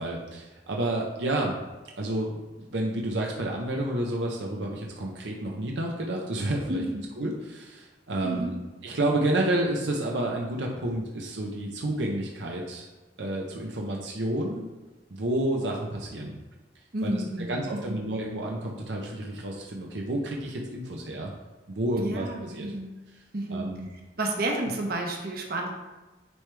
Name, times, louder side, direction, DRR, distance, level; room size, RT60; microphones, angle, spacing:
voice 1, 0.0-1.6 2.0-6.8 7.2-8.5 8.8-12.9 13.2-14.7 15.1-16.4 17.0-17.1 17.5-21.3 21.7-22.7 23.5-23.9, right 1 dB, 85° right, -1 dB, 0.8 m, -30 dB
voice 2, 6.7-7.1 8.2-8.6 16.9-18.0 22.0-22.9 23.3-23.7 24.2-25.7, right 1 dB, 60° right, 2 dB, 1.0 m, -31 dB
9.4 x 3.3 x 3.3 m, 1.2 s
head